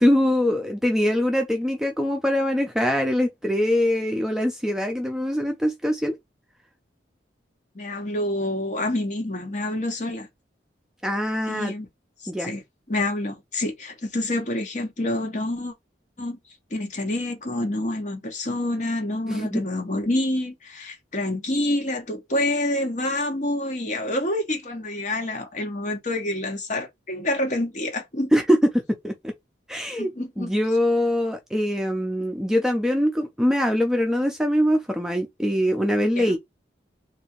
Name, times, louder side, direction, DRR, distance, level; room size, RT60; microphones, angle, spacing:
voice 1, 0.0-6.1 11.0-11.7 12.3-12.5 19.3-19.6 28.3-28.6 29.0-29.1 29.7-30.1 30.4-36.4, equal, 5° right, 0.5 m, -23 dB
voice 2, 7.7-10.3 11.5-11.9 12.2-12.6 12.9-15.7 16.2-16.4 16.7-28.3 30.0-30.5 36.2-36.3, left 1 dB, 40° left, 1.1 m, -27 dB
3.4 x 2.6 x 2.9 m
head